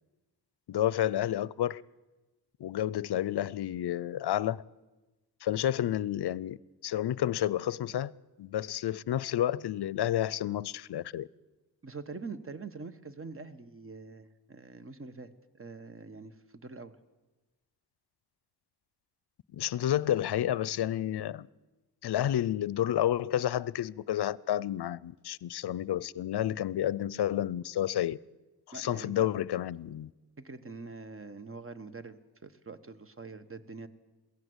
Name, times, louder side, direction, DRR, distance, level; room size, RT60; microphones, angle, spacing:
voice 1, 0.7-1.8 2.6-4.6 5.4-6.6 6.8-8.1 8.4-11.3 19.5-21.5 22.0-28.2 28.7-30.1, left 12 dB, 70° left, 0.6 m, -30 dB
voice 2, 11.8-16.9 28.7-29.3 30.4-33.9, right 4 dB, 30° right, 1.3 m, -44 dB
22.0 x 16.0 x 8.0 m
wide cardioid pair, 90°, 41 cm